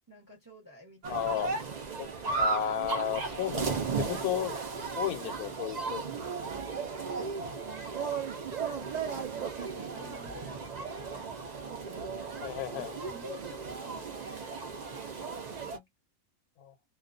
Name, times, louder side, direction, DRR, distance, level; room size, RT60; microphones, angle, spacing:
voice 1, 0.1-1.4 3.3-3.5 6.7-11.3 11.7-15.9, left 1 dB, 15° right, 0.8 m, -51 dB
sound 1, 1.0-15.8, right 5 dB, 80° right, 0.3 m, -35 dB
voice 2, 1.1-1.5 2.0-2.1 2.4-4.6 5.0-6.0 12.4-12.9 16.6-16.7, left 10 dB, 85° left, 1.1 m, -33 dB
2.4 x 2.2 x 2.5 m
omnidirectional pair, 1.5 m